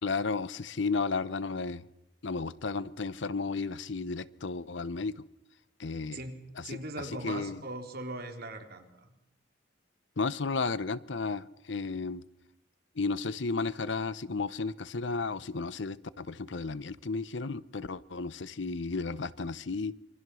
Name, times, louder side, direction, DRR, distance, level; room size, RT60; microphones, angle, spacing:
voice 1, 0.0-1.9 2.2-5.2 5.8-6.2 6.6-7.6 10.2-12.2 13.0-19.9, left 4 dB, 70° left, 17 dB, 0.8 m, -33 dB
voice 2, 6.6-9.1, right 2 dB, 55° right, 3 dB, 3.9 m, -40 dB
27.0 x 24.5 x 6.3 m, 0.88 s
head